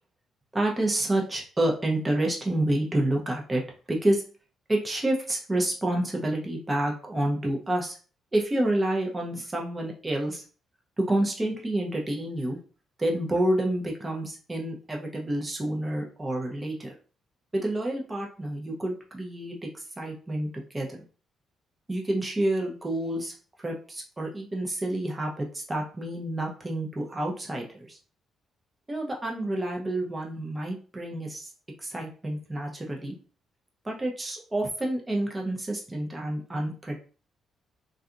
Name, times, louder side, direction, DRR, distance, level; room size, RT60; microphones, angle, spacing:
voice 1, 0.5-3.6 3.9-4.2 4.7-8.0 8.3-10.4 11.0-12.6 13.0-16.9 17.5-20.5 20.7-20.9 21.9-23.3 23.6-28.0 28.9-31.5 31.8-33.1 33.8-37.0, right 1 dB, 20° right, 0 dB, 0.6 m, -28 dB
2.7 x 2.3 x 2.4 m, 0.38 s
cardioid pair, 90°, 0 cm